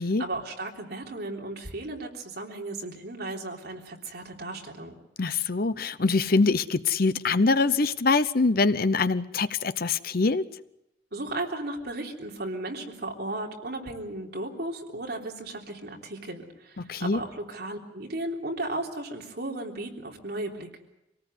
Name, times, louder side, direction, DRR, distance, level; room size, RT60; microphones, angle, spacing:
voice 1, 0.0-5.0 11.1-20.8, right 2 dB, 60° right, 0 dB, 3.6 m, -35 dB
voice 2, 5.2-10.5 16.8-17.2, left 3 dB, 55° left, 14 dB, 0.8 m, -24 dB
25.5 x 18.5 x 8.2 m, 0.86 s
head